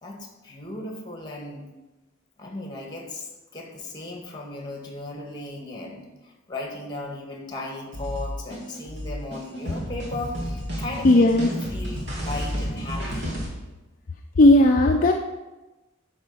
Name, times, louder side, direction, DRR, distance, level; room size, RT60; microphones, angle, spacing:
voice 1, 0.0-1.7 2.4-3.3 3.5-13.3, left 2 dB, 20° left, 2 dB, 1.6 m, -36 dB
sound 1, 7.9-13.5, equal, 55° right, 2.4 m, -31 dB
voice 2, 11.0-11.5 14.4-15.1, left 1 dB, 40° left, 2 dB, 0.5 m, -15 dB
10.5 x 4.3 x 5.4 m, 1.1 s
head